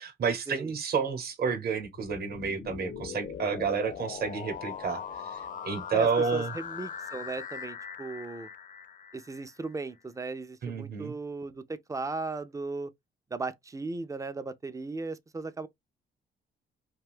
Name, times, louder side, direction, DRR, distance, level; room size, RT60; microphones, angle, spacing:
voice 1, 0.0-6.5 10.6-11.1, right 5 dB, 50° right, 0.9 m, -30 dB
sound 1, 1.8-9.7, left 7 dB, 40° left, 0.5 m, -41 dB
voice 2, 5.9-8.5 9.1-12.9 13.3-15.7, right 3 dB, 15° right, 0.3 m, -37 dB
2.4 x 2.3 x 3.4 m
cardioid pair, 90°, 20 cm